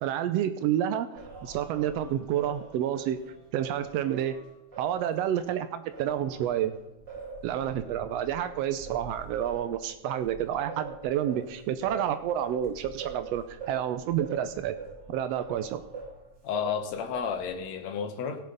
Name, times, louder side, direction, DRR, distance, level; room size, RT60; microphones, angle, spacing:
voice 1, 0.0-1.1 1.4-3.2 3.5-4.3 4.8-6.7 7.4-14.7 15.1-15.8, right 10 dB, 85° right, 10 dB, 1.4 m, -29 dB
Singing, 1.2-5.5 5.9-16.2 16.5-17.6, right 4 dB, 35° right, 4.3 m, -43 dB
voice 2, 16.4-18.4, left 7 dB, 65° left, 7 dB, 2.3 m, -32 dB
17.0 x 7.4 x 4.0 m, 0.92 s
omnidirectional pair, 3.5 m